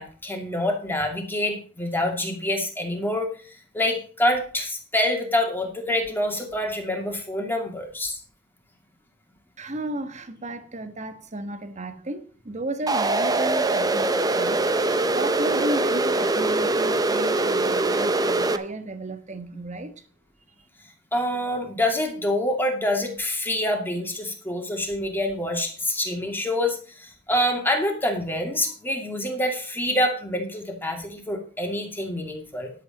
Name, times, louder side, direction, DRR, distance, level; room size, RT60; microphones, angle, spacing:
voice 1, 0.0-8.2 21.1-32.7, left 1 dB, 10° left, 2.4 m, -26 dB
voice 2, 9.6-14.6 15.1-20.0, right 1 dB, 40° right, 1.3 m, -33 dB
sound 1, 12.9-18.6, right 2 dB, 20° right, 0.7 m, -23 dB
11.0 x 8.4 x 5.2 m
head